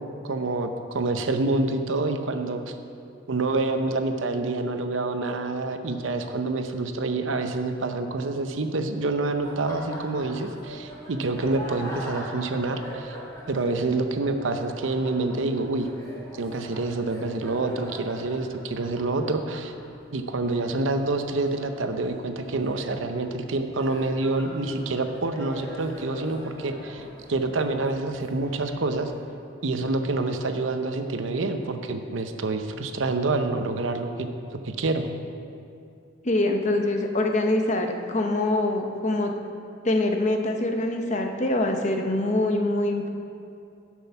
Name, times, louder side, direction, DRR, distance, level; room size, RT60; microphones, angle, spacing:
voice 1, 0.0-2.7 3.3-13.1 13.5-15.9 16.3-19.7 20.1-29.1 29.6-34.3 34.6-35.1, right 2 dB, 85° right, 7 dB, 0.7 m, -27 dB
Laughter, 9.3-29.2, equal, 20° left, 2.3 m, -43 dB
voice 2, 36.2-39.3 39.8-43.1, left 2 dB, 35° left, 4 dB, 0.8 m, -24 dB
10.5 x 6.2 x 5.7 m, 2.5 s
head